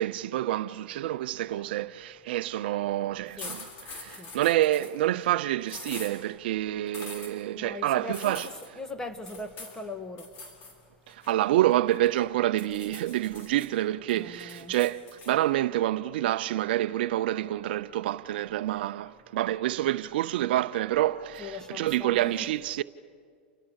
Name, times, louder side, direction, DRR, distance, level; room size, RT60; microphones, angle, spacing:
voice 1, 0.0-8.5 11.1-22.8, right 14 dB, 65° right, 0.6 m, -28 dB
sound 1, 3.4-5.0 5.7-6.1 6.9-7.3 8.1-8.7 9.3-9.8 10.2-10.7 11.1-12.2 12.6-13.7 14.1-15.3, left 3 dB, 40° left, 6.3 m, -43 dB
voice 2, 7.5-10.3 14.1-14.8 21.4-22.5, left 2 dB, 10° left, 1.8 m, -40 dB
29.5 x 29.0 x 6.5 m
hypercardioid pair, 130°, 6 cm